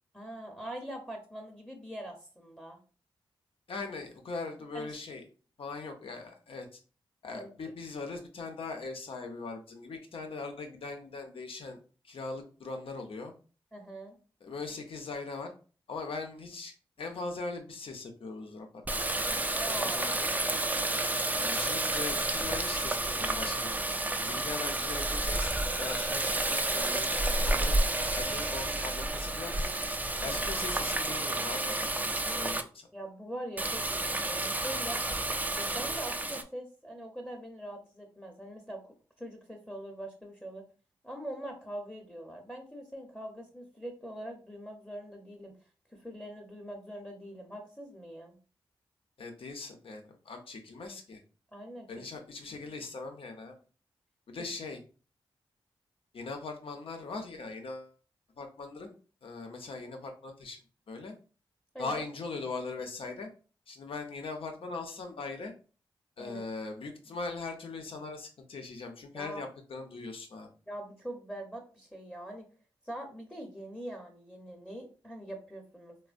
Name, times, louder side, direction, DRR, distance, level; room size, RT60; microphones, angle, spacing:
voice 1, 0.1-2.8 4.7-5.0 7.3-7.5 13.7-14.2 19.5-20.1 30.2-30.4 32.9-35.0 35.6-38.8 39.2-40.6 41.0-45.5 45.9-48.4 51.5-52.0 54.4-54.5 61.7-62.0 66.2-66.5 69.1-69.4 70.7-72.5 72.8-76.0, right 1 dB, 10° left, 1 dB, 0.8 m, -43 dB
voice 2, 3.7-5.2 5.6-6.8 7.2-11.8 12.0-13.3 14.4-15.5 15.9-20.3 21.2-23.8 24.2-29.7 30.2-32.9 49.2-51.2 51.9-53.6 54.3-54.8 56.1-57.9 58.4-59.0 59.2-60.6 60.9-61.1 61.8-63.3 63.7-65.5 66.2-70.5, left 3 dB, 70° left, 4 dB, 0.7 m, -40 dB
Water tap faucet, 18.9-32.6 33.6-36.4, right 2 dB, 15° right, 0.4 m, -30 dB
3.2 x 2.1 x 2.4 m, 0.37 s
supercardioid pair, 40°, 10 cm